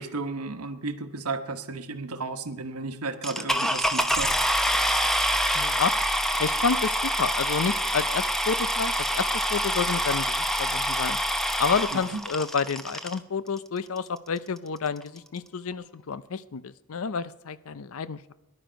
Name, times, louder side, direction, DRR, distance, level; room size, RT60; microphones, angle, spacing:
voice 1, 0.0-4.3 11.9-12.2, right 3 dB, 90° right, 8 dB, 1.1 m, -33 dB
sound 1, 3.2-13.2 14.0-14.1 14.6-14.7 14.9-15.2, equal, ahead, 0.7 m, -26 dB
voice 2, 5.5-5.9 6.4-11.2 11.6-18.3, left 5 dB, 65° left, 15 dB, 0.6 m, -29 dB
19.0 x 11.0 x 5.2 m, 0.97 s
head